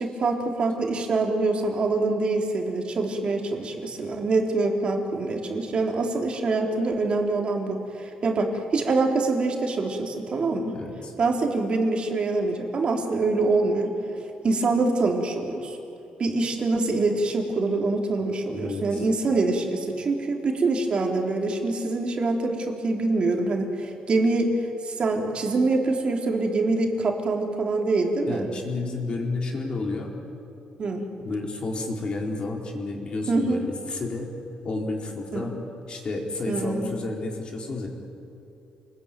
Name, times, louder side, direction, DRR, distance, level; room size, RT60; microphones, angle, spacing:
voice 1, 0.0-10.8 11.2-13.9 14.4-15.8 16.2-28.5 30.8-31.1 33.3-33.6 35.3-35.5 36.5-36.9, right 3 dB, 40° right, 2 dB, 3.7 m, -25 dB
voice 2, 10.7-11.1 18.5-19.0 28.3-30.1 31.2-34.3 34.6-35.6 35.9-37.9, left 3 dB, 40° left, 0 dB, 4.3 m, -31 dB
28.0 x 21.0 x 9.2 m, 2.9 s
cardioid pair, 125°, 3 cm